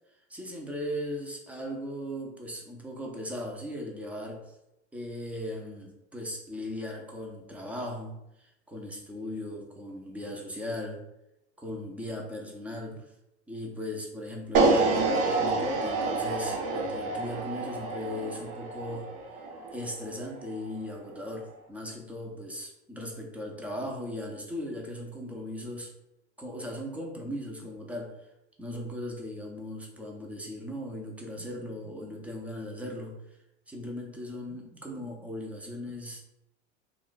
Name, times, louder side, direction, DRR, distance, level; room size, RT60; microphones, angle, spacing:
voice 1, 0.3-4.5 4.9-11.0 11.6-13.1 13.5-19.1 19.7-25.9 26.4-28.2 28.6-33.2 33.7-36.2, left 1 dB, 5° right, 1 dB, 0.5 m, -38 dB
sound 1, 14.5-20.7, right 3 dB, 55° right, 0.7 m, -28 dB
2.3 x 2.3 x 3.8 m, 0.88 s
hypercardioid pair, 105°, 34 cm